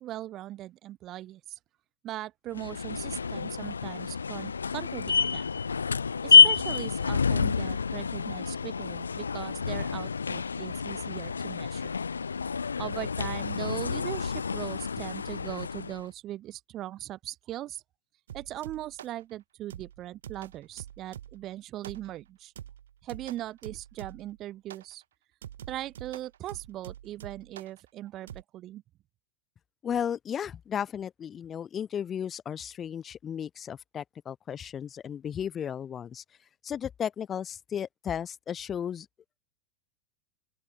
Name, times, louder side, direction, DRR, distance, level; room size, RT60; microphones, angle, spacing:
voice 1, 0.0-1.6 2.0-5.5 6.2-11.9 12.8-17.8 18.3-22.5 23.0-25.0 25.7-28.8, right 14 dB, 35° right, 1.0 m, -39 dB
sound 1, 2.5-16.0, left 5 dB, 75° left, 0.3 m, -27 dB
sound 2, 18.3-19.2 19.7-21.5 21.8-22.3 22.6-24.4 24.7-24.9 25.4-27.8 28.3-28.4, right 10 dB, 60° right, 5.6 m, -46 dB
voice 2, 29.8-36.2 36.6-39.1, left 8 dB, 25° left, 0.6 m, -34 dB
open air
figure-of-eight pair, 90°, 0 cm